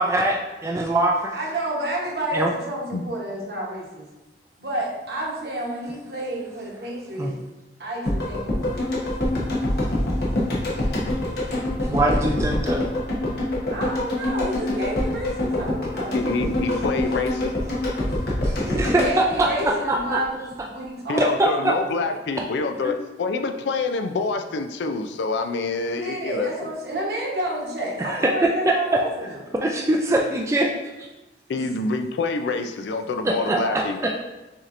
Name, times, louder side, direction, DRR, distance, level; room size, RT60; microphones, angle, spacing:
voice 1, 0.0-1.3 2.3-2.5 7.2-7.3 11.8-12.9 18.4-20.2 21.2-21.7 22.8-22.9 28.0-29.0 29.6-30.7 33.2-33.8, right 1 dB, 15° right, 0 dB, 0.3 m, -22 dB
voice 2, 1.3-4.1 4.6-7.4 7.8-9.1 13.7-16.2 18.6-21.3 21.6-22.1 26.0-29.4 31.5-31.6 33.5-33.9, right 1 dB, 60° right, -3 dB, 1.0 m, -30 dB
sound 1, 8.1-20.2 20.5-20.6, left 1 dB, 65° left, 1.0 m, -25 dB
voice 3, 16.1-17.5 21.1-26.7 31.5-34.0, left 3 dB, 80° left, 7 dB, 0.4 m, -27 dB
6.1 x 2.9 x 2.5 m, 1.1 s
head